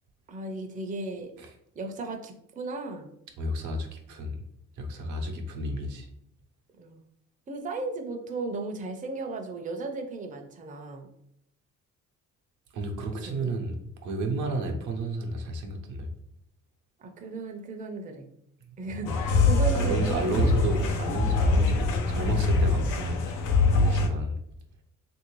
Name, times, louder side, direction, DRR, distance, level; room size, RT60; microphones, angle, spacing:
voice 1, 0.3-1.3 1.8-3.1 6.8-7.0 7.5-11.1 13.3-13.5 17.0-18.3 18.8-20.5, right 3 dB, 25° right, 3 dB, 0.5 m, -35 dB
voice 2, 3.4-4.4 4.8-6.1 12.7-16.1 19.0-19.2 19.7-24.4, right 2 dB, 80° right, 3 dB, 0.7 m, -32 dB
sound 1, 19.1-24.1, left 3 dB, 85° left, 0.6 m, -24 dB
3.1 x 2.6 x 3.0 m, 0.74 s
cardioid pair, 90°, 30 cm